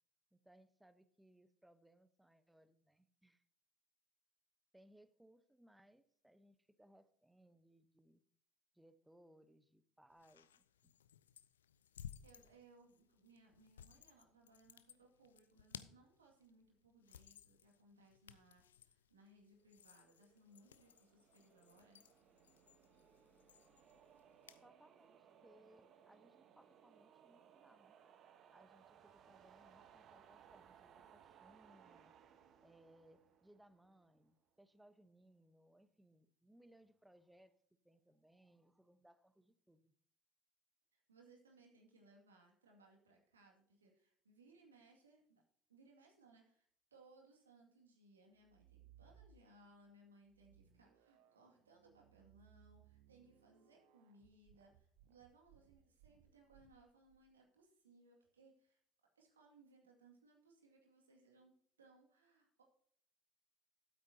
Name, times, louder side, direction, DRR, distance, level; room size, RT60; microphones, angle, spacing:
voice 1, 0.3-3.4 4.7-8.2 8.7-10.9 24.6-28.0 28.5-32.1 32.6-37.6 37.8-39.9, right 1 dB, 5° right, 12 dB, 0.9 m, -67 dB
sound 1, 10.1-24.7, left 9 dB, 80° left, 0.4 m, -60 dB
voice 2, 12.0-22.1 40.9-45.4 45.7-58.8 59.2-62.6, right 2 dB, 85° right, 1 dB, 2.1 m, -67 dB
sound 2, 20.0-34.3, right 8 dB, 50° right, 1.1 m, -66 dB
sound 3, 48.3-49.7 50.3-57.2, right 9 dB, 70° right, 0.8 m, -67 dB
12.5 x 8.5 x 2.8 m, 0.62 s
figure-of-eight pair, 65°, 0 cm